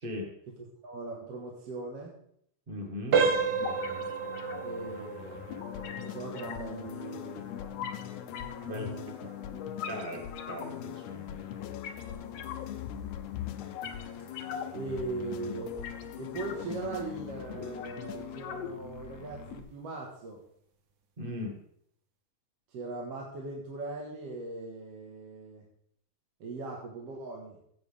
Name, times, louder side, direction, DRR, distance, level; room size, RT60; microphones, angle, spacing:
voice 1, 0.6-2.2 4.6-7.5 8.7-9.3 9.6-9.7 12.1-12.6 14.7-15.8 16.2-20.4 22.7-25.6 26.4-27.6, right 3 dB, 60° right, -1 dB, 2.4 m, -40 dB
voice 2, 2.7-3.2 8.6-8.8 9.9-11.4 21.2-21.6, left 1 dB, 30° right, 1 dB, 1.0 m, -38 dB
sound 1, 3.1-13.8 14.1-14.4 15.0-15.1 15.6-15.7, right 5 dB, 80° right, 0.9 m, -34 dB
sound 2, 3.6-19.6, left 7 dB, 65° left, 1.8 m, -42 dB
sound 3, 5.5-18.4, left 12 dB, 85° left, 2.0 m, -43 dB
14.5 x 8.4 x 3.5 m, 0.69 s
omnidirectional pair, 3.4 m